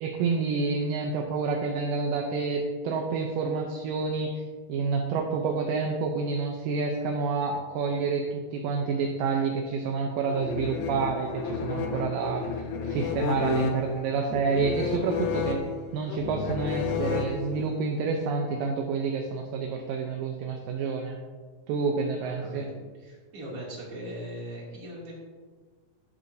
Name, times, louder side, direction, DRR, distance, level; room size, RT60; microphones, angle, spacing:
voice 1, 0.0-4.4 4.7-15.6 15.9-21.2 21.7-22.7, right 4 dB, 75° right, 2 dB, 2.4 m, -28 dB
sound 1, 10.3-17.8, left 5 dB, 75° left, 2.2 m, -31 dB
voice 2, 22.2-22.7 23.0-25.1, right 1 dB, 45° right, -5 dB, 3.6 m, -39 dB
12.0 x 11.5 x 2.8 m, 1.5 s
omnidirectional pair, 4.1 m